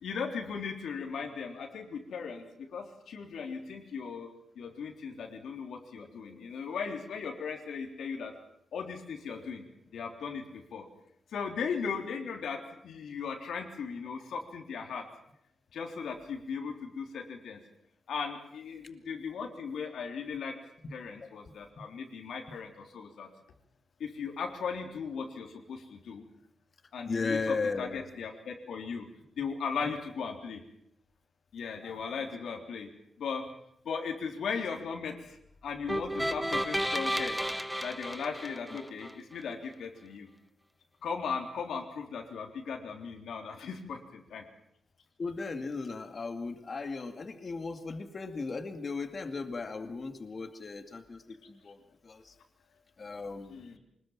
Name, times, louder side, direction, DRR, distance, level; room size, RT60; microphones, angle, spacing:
voice 1, 0.0-4.3 4.6-8.3 8.7-10.9 11.3-12.6 12.8-15.0 15.7-17.6 18.1-20.5 20.9-23.3 24.0-26.2 26.9-29.1 29.4-30.6 31.5-32.9 33.2-33.4 33.9-35.4 35.6-37.4 37.8-40.3 41.0-44.4 53.5-53.8, left 6 dB, 80° left, 1 dB, 3.7 m, -37 dB
voice 2, 27.1-28.0 31.8-32.3 45.2-52.3 53.0-53.6, left 4 dB, 35° left, 7 dB, 2.3 m, -36 dB
sound 1, 35.9-39.1, equal, ahead, 1.0 m, -32 dB
25.5 x 20.0 x 7.5 m, 0.74 s
wide cardioid pair, 155°, 0 cm